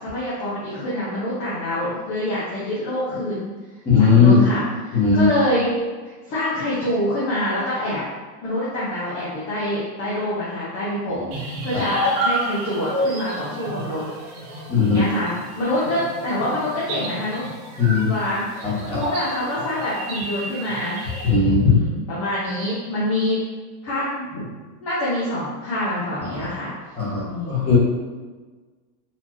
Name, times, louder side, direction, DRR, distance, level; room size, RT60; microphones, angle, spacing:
voice 1, 0.0-3.5 4.0-5.7 6.3-8.0 8.4-14.4 14.8-17.5 18.0-21.0 21.6-23.4 23.8-24.5 24.8-26.7 27.2-27.6, left 1 dB, 25° left, -9 dB, 0.8 m, -26 dB
voice 2, 3.8-4.4 4.9-5.3 11.1-11.2 11.7-11.8 14.7-15.0 17.8-18.1 18.6-19.0 21.2-21.8 26.2-26.4 26.9-27.8, left 5 dB, 10° left, -9 dB, 1.2 m, -18 dB
sound 1, 11.3-21.3, right 1 dB, 55° right, 1.1 m, -30 dB
4.3 x 2.8 x 2.9 m, 1.4 s
supercardioid pair, 150°, 50 cm